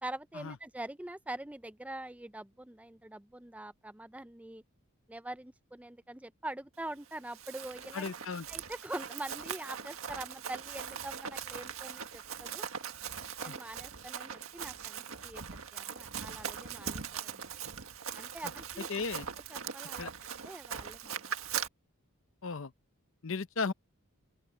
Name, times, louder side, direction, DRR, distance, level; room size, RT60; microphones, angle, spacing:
voice 1, 0.0-4.6 5.1-8.1 8.5-12.7 13.4-17.5 18.1-18.9 19.5-20.1 20.4-21.2, right 1 dB, 5° right, 0.5 m, -44 dB
Run, 7.1-21.7, right 7 dB, 70° right, 1.7 m, -41 dB
voice 2, 7.9-8.5 13.5-13.6 18.9-19.3 20.0-20.1 22.4-22.7 23.2-23.7, left 4 dB, 60° left, 0.8 m, -35 dB
open air
head